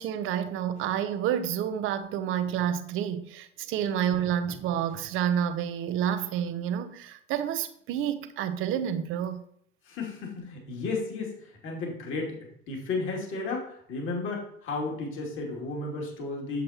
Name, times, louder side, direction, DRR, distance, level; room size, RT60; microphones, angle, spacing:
voice 1, 0.0-9.4, right 9 dB, 45° right, 0.8 m, -29 dB
voice 2, 9.9-11.3 11.6-12.4 12.7-16.6, left 3 dB, 45° left, 2.8 m, -33 dB
8.3 x 7.5 x 2.9 m
figure-of-eight pair, 70°, 29 cm